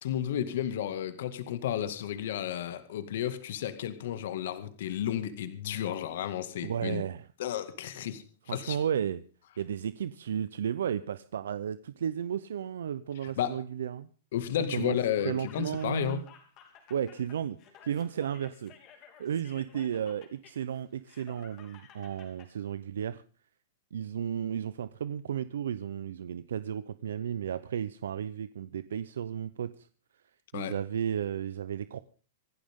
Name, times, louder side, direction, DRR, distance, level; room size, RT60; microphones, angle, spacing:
voice 1, 0.0-7.0 7.4-8.8 13.2-13.6 14.3-16.2 30.5-30.7, left 10 dB, 65° left, 2.1 m, -32 dB
voice 2, 6.6-7.3 8.5-9.2 9.6-14.1 14.7-15.0 15.2-16.2 16.9-17.6 17.8-18.7 19.2-23.2 23.9-29.9 30.5-32.0, right 9 dB, 85° right, 0.7 m, -33 dB
Laughter, 14.8-22.5, left 8 dB, 30° left, 3.4 m, -55 dB
26.0 x 12.0 x 3.7 m
hypercardioid pair, 155°, 0 cm